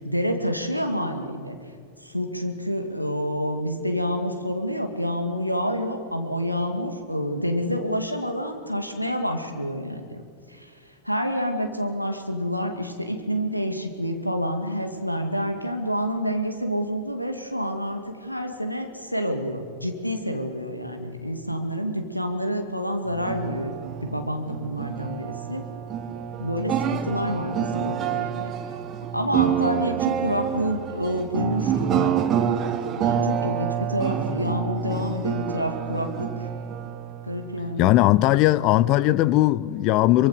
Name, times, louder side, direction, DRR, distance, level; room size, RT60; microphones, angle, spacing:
voice 1, 0.0-1.6 2.0-10.2 10.5-10.7 11.0-23.7 24.0-25.7 26.4-28.5 29.1-32.0 32.9-36.5 37.2-37.9, equal, 90° left, 2.2 m, -28 dB
sound 1, 23.1-37.8, right 8 dB, 30° right, 1.6 m, -27 dB
voice 2, 37.8-40.3, left 16 dB, 40° left, 0.6 m, -19 dB
23.5 x 23.0 x 6.8 m
figure-of-eight pair, 90°, 0 cm